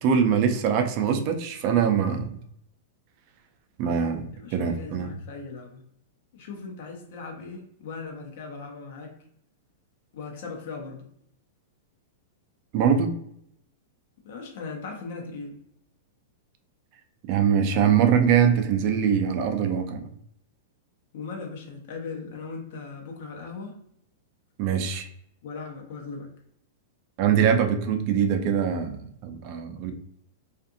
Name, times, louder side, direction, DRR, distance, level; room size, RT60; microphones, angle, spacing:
voice 1, 0.0-2.4 3.8-5.1 12.7-13.1 17.3-20.1 24.6-25.1 27.2-29.9, right 7 dB, 45° right, 5 dB, 0.5 m, -23 dB
voice 2, 4.3-5.8 6.3-9.1 10.1-11.1 14.2-15.6 21.1-23.8 25.4-26.3, left 4 dB, 65° left, 1 dB, 0.8 m, -38 dB
2.5 x 2.5 x 2.6 m, 0.72 s
hypercardioid pair, 135°, 0 cm